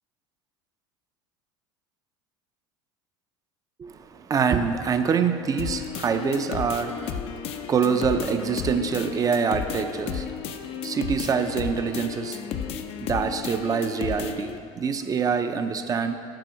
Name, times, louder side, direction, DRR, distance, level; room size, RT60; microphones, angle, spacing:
voice 1, 3.8-10.4 10.8-12.7 13.0-16.2, right 6 dB, 30° right, 8 dB, 0.5 m, -26 dB
sound 1, 5.6-14.6, left 7 dB, 55° left, 0.5 m, -33 dB
7.6 x 5.3 x 5.1 m, 2.3 s
hypercardioid pair, 90°, 12 cm